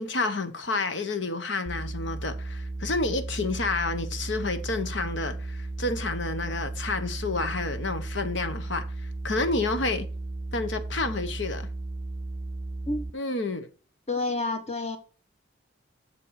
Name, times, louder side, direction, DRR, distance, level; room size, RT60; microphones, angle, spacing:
voice 1, 0.0-8.8 9.2-10.1 10.5-11.7 13.1-13.7, left 3 dB, 75° left, 1.2 m, -29 dB
sound 1, 1.7-13.1, right 2 dB, 20° right, 0.4 m, -35 dB
voice 2, 14.1-15.0, left 2 dB, 35° left, 1.4 m, -29 dB
7.5 x 6.8 x 5.0 m
head